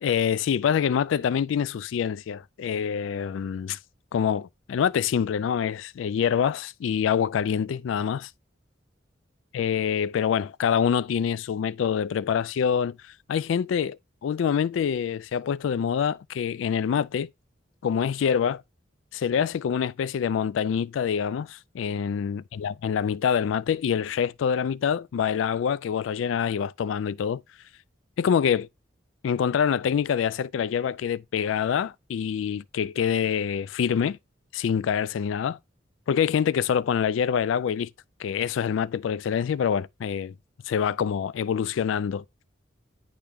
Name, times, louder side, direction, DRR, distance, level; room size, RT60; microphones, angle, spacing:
voice 1, 0.0-3.8 4.1-8.3 9.5-17.3 17.8-18.6 19.1-27.4 28.2-28.7 29.2-34.2 34.5-35.6 36.1-37.9 38.2-40.3 40.7-42.2, left 7 dB, 85° left, 0.3 m, -26 dB
10.0 x 3.4 x 3.5 m
head